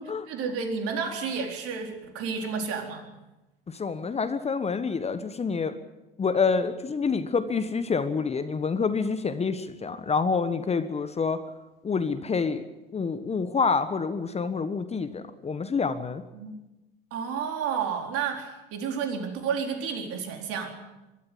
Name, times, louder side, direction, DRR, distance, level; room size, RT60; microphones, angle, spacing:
voice 1, 0.3-3.1 16.3-16.6 17.1-20.8, right 6 dB, 50° right, 4 dB, 4.1 m, -31 dB
voice 2, 3.7-5.7 6.2-11.4 11.8-12.6 12.9-16.2, left 5 dB, 20° left, 10 dB, 1.3 m, -27 dB
23.0 x 13.5 x 9.3 m, 1.0 s
hypercardioid pair, 75°, 29 cm